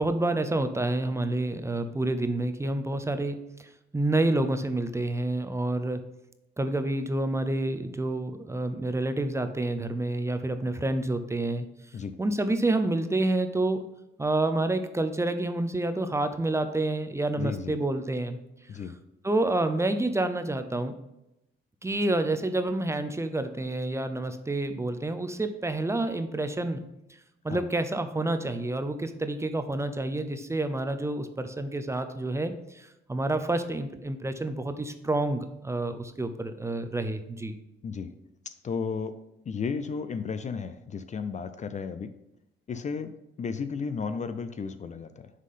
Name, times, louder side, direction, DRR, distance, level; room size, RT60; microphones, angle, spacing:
voice 1, 0.0-6.0 6.6-11.7 12.2-13.8 14.2-18.4 19.2-20.9 21.8-26.8 27.4-37.5, right 2 dB, 15° right, 9 dB, 0.6 m, -28 dB
voice 2, 17.4-17.8 18.7-18.9 27.5-27.6 37.8-38.1 38.6-39.1 39.5-42.1 42.7-43.1 43.4-45.3, left 5 dB, 35° left, 10 dB, 0.4 m, -33 dB
6.4 x 3.7 x 5.6 m, 0.86 s
cardioid pair, 90°, 20 cm